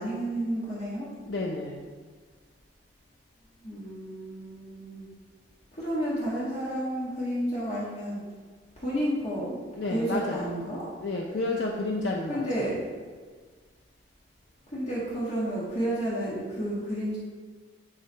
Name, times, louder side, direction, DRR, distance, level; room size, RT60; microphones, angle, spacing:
voice 1, 0.0-1.1 3.6-5.1 5.7-8.2 8.8-9.6 9.9-10.9 12.3-12.9 14.7-17.2, right 1 dB, 40° left, -8 dB, 1.7 m, -31 dB
voice 2, 1.3-1.9 9.8-10.4 11.0-12.7, left 2 dB, 85° left, -1 dB, 0.7 m, -31 dB
9.8 x 3.8 x 4.5 m, 1.5 s
head